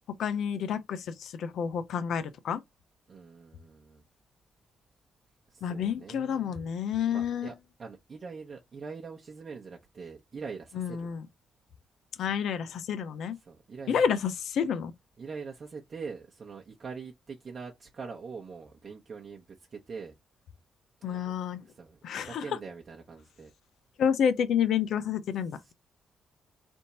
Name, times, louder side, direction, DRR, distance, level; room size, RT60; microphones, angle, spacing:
voice 1, 0.2-2.6 5.6-7.5 10.7-11.3 12.2-13.4 13.9-14.9 21.0-21.6 22.0-22.4 24.0-25.7, left 8 dB, 75° left, 0.7 m, -29 dB
voice 2, 3.1-4.0 5.5-6.7 7.1-11.1 13.4-14.1 15.2-20.2 21.0-21.3 21.6-23.5 25.6-25.7, right 5 dB, 50° right, 0.9 m, -43 dB
3.5 x 2.7 x 4.2 m
supercardioid pair, 65°, 0 cm